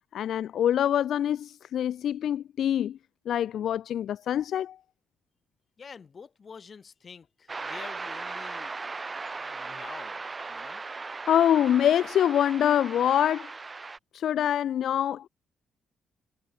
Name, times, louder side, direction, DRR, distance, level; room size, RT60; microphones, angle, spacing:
voice 1, 0.1-3.0 3.3-4.8 11.3-13.5 14.1-15.3, left 10 dB, 70° left, 0.5 m, -25 dB
voice 2, 5.8-8.8 9.3-10.2 10.5-10.8, left 5 dB, 40° left, 5.1 m, -47 dB
sound 1, 7.5-14.0, right 4 dB, 30° right, 1.0 m, -38 dB
cardioid pair, 90°, 0 cm